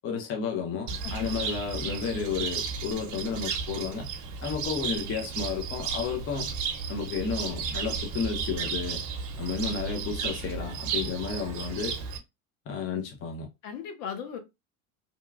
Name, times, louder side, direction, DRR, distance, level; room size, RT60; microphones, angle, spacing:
voice 1, 0.0-4.1 4.4-6.5 6.9-9.0 9.4-12.0 12.7-13.5, left 6 dB, 30° left, 0.6 m, -32 dB
Cricket, 0.9-12.2, right 5 dB, 45° right, 0.8 m, -34 dB
voice 2, 13.6-14.4, left 7 dB, 70° left, 0.9 m, -38 dB
2.9 x 2.2 x 2.3 m
hypercardioid pair, 90°, 42 cm